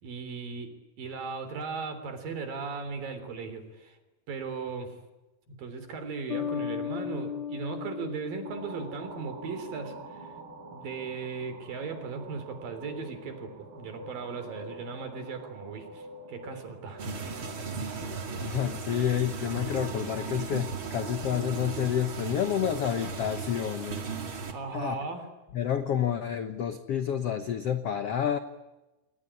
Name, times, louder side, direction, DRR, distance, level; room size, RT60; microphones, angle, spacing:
voice 1, 0.0-4.0 4.3-4.9 5.6-9.9 10.7-16.0 16.3-17.1 24.5-25.3, right 5 dB, 65° right, 9 dB, 5.1 m, -37 dB
Bass guitar, 6.3-9.8, left 8 dB, 50° left, 2.8 m, -36 dB
sound 1, 8.4-23.7, right 2 dB, 90° right, 6.2 m, -47 dB
sound 2, 17.0-24.5, right 4 dB, 35° right, 2.9 m, -36 dB
voice 2, 18.4-24.1 24.7-25.0 25.5-28.4, left 9 dB, 70° left, 9 dB, 1.5 m, -29 dB
29.5 x 20.5 x 10.0 m, 1.1 s
omnidirectional pair, 4.4 m